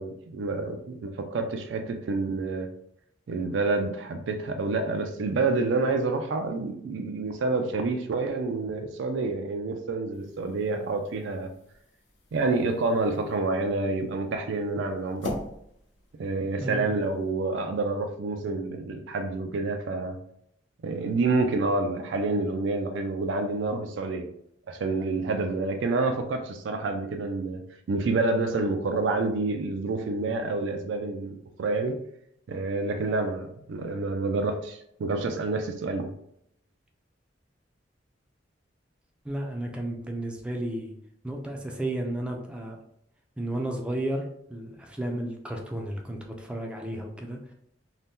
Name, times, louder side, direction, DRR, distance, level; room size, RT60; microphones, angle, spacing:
voice 1, 0.0-2.7 3.3-11.5 12.3-15.3 16.2-20.2 20.8-24.3 24.7-27.6 27.9-32.0 32.5-36.1, right 3 dB, 85° right, 5 dB, 0.4 m, -28 dB
sound 1, 10.1-17.3, left 1 dB, 80° left, 0.8 m, -43 dB
voice 2, 39.2-40.9 41.2-42.8 43.4-47.5, right 1 dB, 5° right, 1 dB, 0.4 m, -33 dB
2.7 x 2.1 x 3.4 m, 0.73 s
head